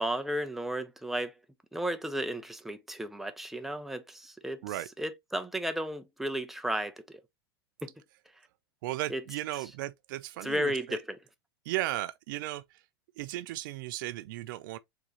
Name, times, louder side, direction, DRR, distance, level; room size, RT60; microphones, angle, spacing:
voice 1, 0.0-1.3 1.7-4.6 5.0-7.2 7.8-7.9 9.1-9.2 10.4-11.2, right 1 dB, ahead, 0.8 m, -33 dB
voice 2, 8.8-11.0 11.7-12.8 13.2-14.8, right 16 dB, 55° right, 0.4 m, -35 dB
4.7 x 3.7 x 3.0 m
figure-of-eight pair, 90°, 13 cm